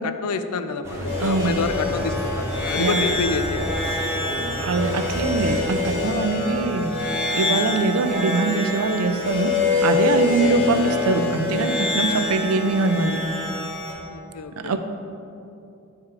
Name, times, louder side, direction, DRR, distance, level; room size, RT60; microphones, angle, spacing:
voice 1, 0.0-4.0 10.4-10.6 14.1-14.8, left 4 dB, 85° left, 10 dB, 0.5 m, -28 dB
sound 1, 0.8-5.8, equal, 10° right, 1.1 m, -31 dB
sound 2, 1.0-13.9, left 3 dB, 60° left, 2.0 m, -26 dB
voice 2, 1.2-1.5 2.7-3.0 4.6-6.9 7.3-9.5 9.8-13.2 14.6-14.8, right 3 dB, 85° right, 9 dB, 0.5 m, -22 dB
8.7 x 4.9 x 4.8 m, 2.7 s
head